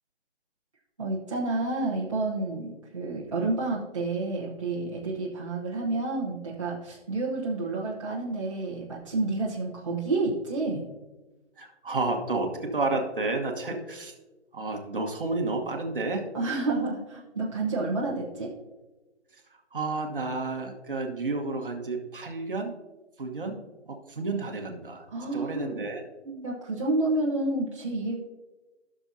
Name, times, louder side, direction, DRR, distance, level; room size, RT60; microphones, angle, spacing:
voice 1, 1.0-10.9 16.3-18.5 25.1-25.8 26.4-28.2, right 2 dB, 25° right, -6 dB, 1.0 m, -29 dB
voice 2, 11.6-14.1 14.5-16.2 19.7-22.7 23.2-26.5, right 3 dB, 50° right, 3 dB, 1.4 m, -31 dB
16.0 x 6.3 x 2.8 m, 1.2 s
hypercardioid pair, 175°, 35 cm